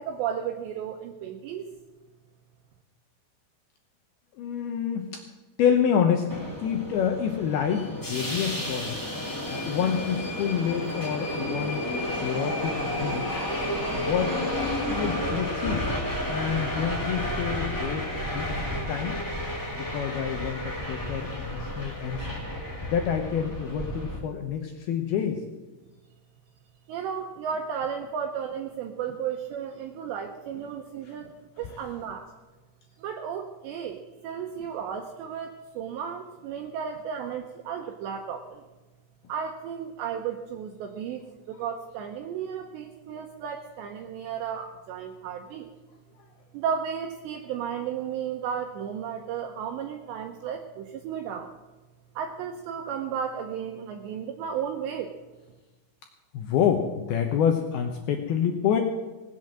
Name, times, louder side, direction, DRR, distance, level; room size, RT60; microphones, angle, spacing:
voice 1, 0.0-1.7 26.9-32.3 33.0-38.6 39.3-41.2 41.5-45.7 46.5-51.5 52.2-55.1, right 7 dB, 75° right, 4 dB, 2.7 m, -34 dB
voice 2, 4.4-5.2 5.6-9.0 9.5-11.8 12.2-13.4 13.8-15.9 16.3-19.2 19.7-22.3 22.8-25.4 31.1-31.2 56.3-58.8, left 8 dB, 80° left, 4 dB, 2.2 m, -28 dB
Subway metro underground, 6.3-24.2, left 1 dB, 10° left, 1.0 m, -31 dB
18.5 x 8.3 x 7.5 m, 1.2 s
omnidirectional pair, 5.7 m